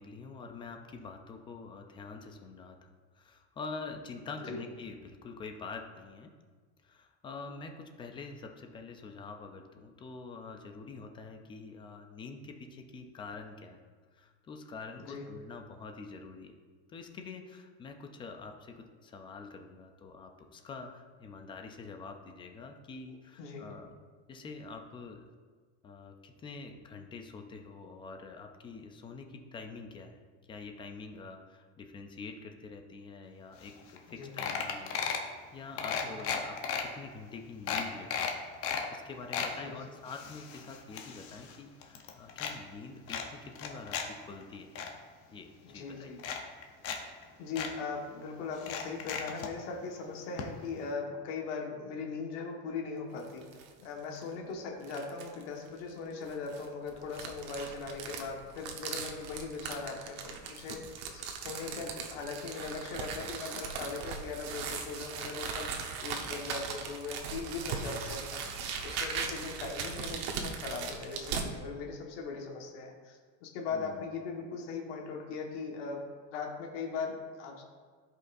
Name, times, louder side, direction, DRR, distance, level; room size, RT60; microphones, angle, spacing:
voice 1, 0.0-6.3 6.8-13.8 14.1-16.5 16.9-24.0 24.3-25.2 25.8-30.2 30.5-38.4 38.9-44.7 45.3-46.1 73.7-74.1, left 4 dB, 15° left, 5 dB, 0.3 m, -46 dB
voice 2, 23.4-23.7 34.1-34.3 36.0-36.2 39.6-39.8 45.6-46.2 47.4-53.4 53.8-60.8 61.1-65.7 66.0-76.0 76.3-77.6, left 4 dB, 80° left, 1 dB, 1.5 m, -39 dB
sound 1, 33.7-33.8 34.0-34.1 34.4-35.3 35.8-36.8 37.3-37.4 37.7-38.9 39.1-39.5 40.1-41.6 41.8-42.5 43.1-44.1 44.4-44.9 45.7-45.8 46.2-47.0 47.2-47.3 47.6-47.7 48.6-49.5 50.4-50.5 50.8-50.9, left 7 dB, 40° left, 0.8 m, -35 dB
sound 2, 53.2-53.7 54.2-54.3 54.8-55.4 56.3-71.5, right 6 dB, 65° right, 1.1 m, -39 dB
14.5 x 5.4 x 2.6 m, 1.5 s
cardioid pair, 170°, 35 cm